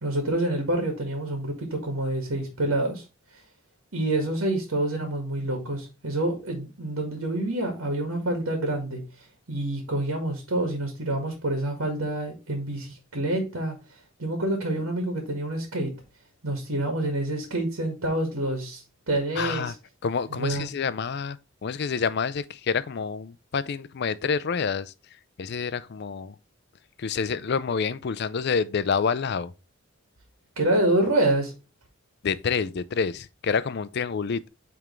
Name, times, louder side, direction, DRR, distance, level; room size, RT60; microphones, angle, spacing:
voice 1, 0.0-3.0 3.9-9.0 9.5-13.8 14.2-15.9 16.4-19.7 20.3-20.7 30.6-31.5, right 1 dB, 80° right, 1.8 m, -27 dB
voice 2, 19.4-19.7 20.0-24.9 25.4-26.4 27.0-29.5 32.2-34.5, left 6 dB, 50° left, 0.4 m, -28 dB
8.7 x 3.5 x 3.1 m
head